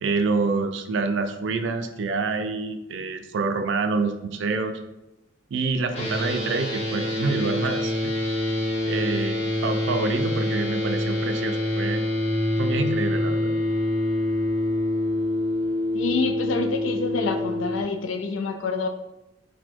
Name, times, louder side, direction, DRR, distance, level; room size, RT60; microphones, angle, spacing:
voice 1, 0.0-4.7 5.5-8.1 8.9-12.0 12.6-13.5, right 3 dB, 70° right, 8 dB, 0.4 m, -27 dB
sound 1, 5.9-17.8, left 1 dB, 35° left, 0.9 m, -26 dB
voice 2, 15.9-18.9, left 4 dB, 80° left, 5 dB, 0.4 m, -27 dB
4.0 x 2.2 x 4.4 m, 0.99 s
head